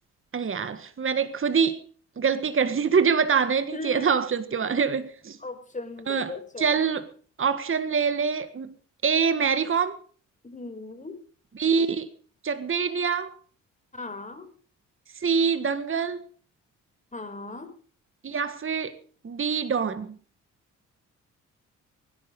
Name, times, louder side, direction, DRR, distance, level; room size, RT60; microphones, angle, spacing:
voice 1, 0.3-1.8 2.2-5.4 6.1-7.1 7.4-8.7 9.0-10.0 11.6-12.1 12.4-13.3 15.2-16.2 18.2-18.9 19.2-20.2, right 6 dB, 40° right, 1.7 m, -25 dB
voice 2, 3.7-4.2 5.4-6.8 10.4-11.2 13.9-14.5 17.1-17.7, left 2 dB, 25° left, 5.2 m, -38 dB
23.5 x 10.5 x 5.3 m
cardioid pair, 70°, 32 cm